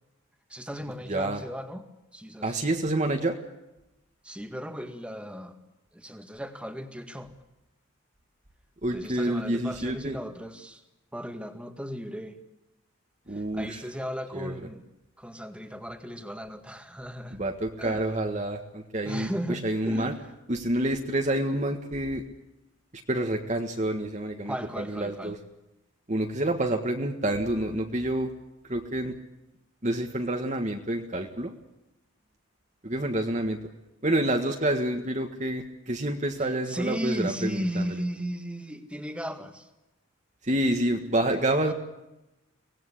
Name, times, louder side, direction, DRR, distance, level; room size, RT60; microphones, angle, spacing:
voice 1, 0.5-1.9 2.1-2.6 4.2-5.6 5.9-7.3 8.9-10.8 11.1-12.4 13.3-14.8 15.2-17.4 17.8-18.1 19.0-20.3 24.4-25.4 36.4-39.7 41.3-41.7, equal, 5° right, 8 dB, 1.9 m, -36 dB
voice 2, 1.1-1.4 2.4-3.4 8.8-10.2 13.3-13.7 14.3-14.5 17.4-20.1 20.5-22.2 23.1-25.4 26.1-28.3 28.7-29.1 29.8-31.5 32.8-33.6 34.0-37.9 40.4-41.7, right 1 dB, 35° right, 4 dB, 1.7 m, -28 dB
24.5 x 18.5 x 8.5 m, 0.95 s
head